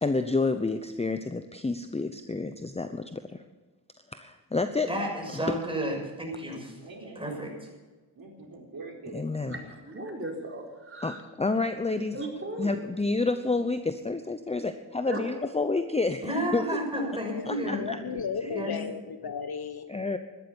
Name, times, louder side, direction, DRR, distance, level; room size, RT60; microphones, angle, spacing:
voice 1, 0.0-3.4 4.1-4.9 5.3-5.6 9.1-9.6 11.0-12.2 12.6-16.6 17.5-18.0 19.9-20.2, left 3 dB, 15° left, 9 dB, 0.8 m, -29 dB
voice 2, 4.9-6.7 7.1-7.5 16.2-17.9 18.5-18.8, equal, 10° right, 0 dB, 6.5 m, -31 dB
voice 3, 6.8-7.4 8.2-9.2 17.7-18.8, right 3 dB, 50° right, 0 dB, 4.1 m, -43 dB
voice 4, 9.4-11.2 12.1-12.8 15.0-15.3, right 1 dB, 30° right, 0 dB, 4.3 m, -37 dB
voice 5, 16.9-19.9, left 6 dB, 55° left, 10 dB, 1.2 m, -35 dB
13.0 x 12.5 x 7.1 m, 1.3 s
cardioid pair, 60°, 44 cm